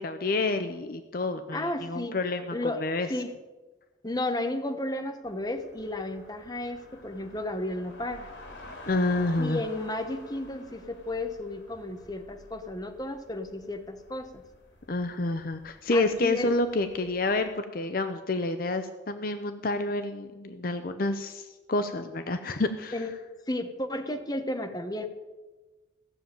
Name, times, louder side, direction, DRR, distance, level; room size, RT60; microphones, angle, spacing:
voice 1, 0.0-3.1 8.9-9.6 14.9-23.0, left 2 dB, 50° left, 8 dB, 0.7 m, -29 dB
voice 2, 1.5-2.2 2.5-3.3 4.0-8.3 9.4-14.4 15.9-16.5 22.9-23.2 23.5-25.1, left 1 dB, 20° left, 5 dB, 1.1 m, -33 dB
sound 1, 5.2-17.6, left 1 dB, 90° left, 2.8 m, -50 dB
15.5 x 7.1 x 8.9 m, 1.2 s
head